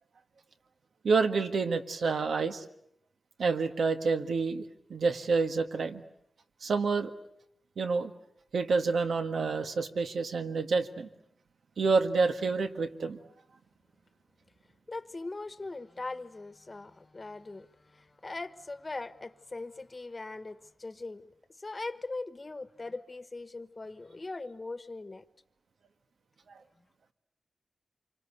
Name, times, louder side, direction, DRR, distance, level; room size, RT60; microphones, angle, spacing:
voice 1, 1.0-2.6 3.4-6.0 6.6-7.1 7.8-8.1 8.5-11.1 11.8-13.2, right 4 dB, 85° right, 1.7 m, -28 dB
voice 2, 14.9-17.7 17.9-21.3 21.6-25.2, left 3 dB, 30° left, 1.2 m, -40 dB
27.5 x 24.5 x 8.3 m
wide cardioid pair, 130°, 0 cm